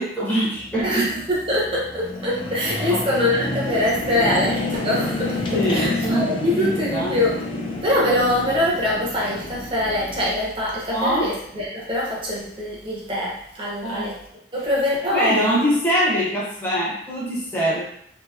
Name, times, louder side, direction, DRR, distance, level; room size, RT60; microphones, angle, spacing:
voice 1, 0.0-1.2 2.9-3.0 5.5-7.2 10.9-11.3 13.8-14.1 15.1-17.8, equal, 10° left, -8 dB, 0.8 m, -23 dB
sound 1, 0.5-10.3, left 2 dB, 25° left, 0.3 m, -29 dB
voice 2, 0.8-7.4 7.8-14.2 14.5-15.6, left 1 dB, 30° right, -5 dB, 0.8 m, -24 dB
2.8 x 2.6 x 2.3 m, 0.69 s
head